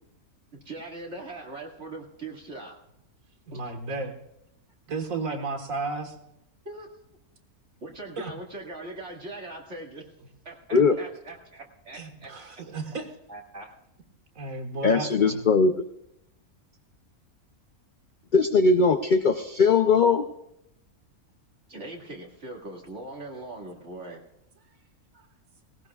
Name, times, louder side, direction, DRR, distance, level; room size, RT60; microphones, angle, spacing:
voice 1, 0.6-2.8 3.5-3.6 6.6-6.9 7.8-10.1 10.4-12.3 13.3-13.7 21.7-24.2, right 2 dB, 50° right, -1 dB, 2.4 m, -40 dB
voice 2, 3.5-4.2 4.9-6.2 8.2-8.3 11.9-13.1 14.4-15.5 25.1-25.2, right 3 dB, 70° right, 5 dB, 2.0 m, -33 dB
voice 3, 14.8-15.9 18.3-20.2, left 4 dB, 45° left, 6 dB, 0.6 m, -20 dB
18.5 x 18.5 x 2.4 m, 0.82 s
omnidirectional pair, 1.5 m